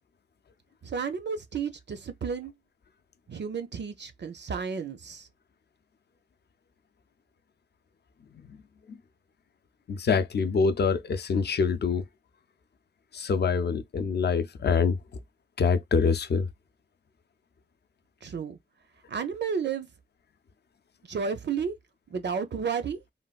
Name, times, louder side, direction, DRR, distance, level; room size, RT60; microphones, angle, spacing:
voice 1, 0.8-2.5 3.3-5.3 18.2-18.6 19.1-19.9 21.1-21.8 22.1-23.0, right 6 dB, 70° right, 0.5 m, -32 dB
voice 2, 9.9-12.0 13.1-15.0 15.6-16.5, left 5 dB, 60° left, 0.4 m, -25 dB
3.3 x 2.2 x 2.3 m
wide cardioid pair, 100°, 19 cm